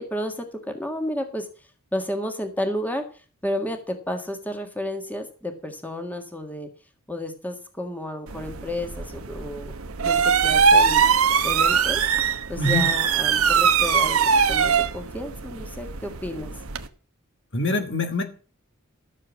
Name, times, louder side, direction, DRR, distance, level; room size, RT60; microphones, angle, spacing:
voice 1, 0.0-1.5 1.9-3.1 3.4-6.7 7.1-9.7 10.0-11.0 11.4-12.0 12.5-14.2 14.5-16.5, left 1 dB, 10° left, 5 dB, 1.7 m, -31 dB
sound 1, 8.3-16.9, right 6 dB, 80° right, 1.1 m, -22 dB
voice 2, 12.6-12.9 17.5-18.2, left 2 dB, 60° left, 7 dB, 2.0 m, -24 dB
14.0 x 7.0 x 7.2 m, 0.38 s
head